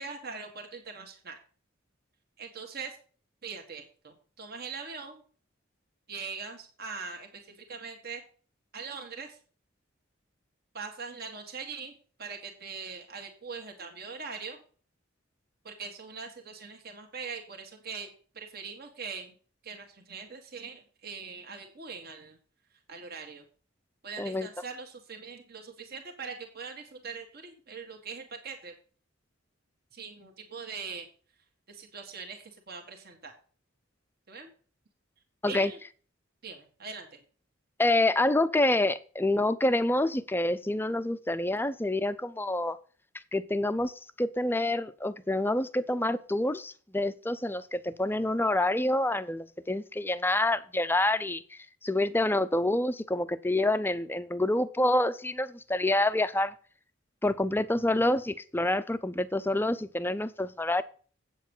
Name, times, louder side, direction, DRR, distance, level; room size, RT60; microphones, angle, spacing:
voice 1, 0.0-1.4 2.4-3.0 3.4-5.2 6.1-8.2 8.7-9.4 10.7-14.6 15.6-18.1 18.4-19.3 19.6-22.4 22.9-23.4 24.0-28.7 29.9-31.1 31.7-33.3 34.3-34.5 35.5-35.8 36.4-37.2, right 5 dB, 50° right, 3 dB, 1.8 m, -42 dB
voice 2, 24.2-24.5 35.4-35.7 37.8-42.8 43.3-43.9 44.2-51.4 51.8-56.5 57.2-60.8, left 1 dB, 10° left, 13 dB, 0.5 m, -27 dB
8.4 x 7.3 x 5.5 m, 0.40 s
head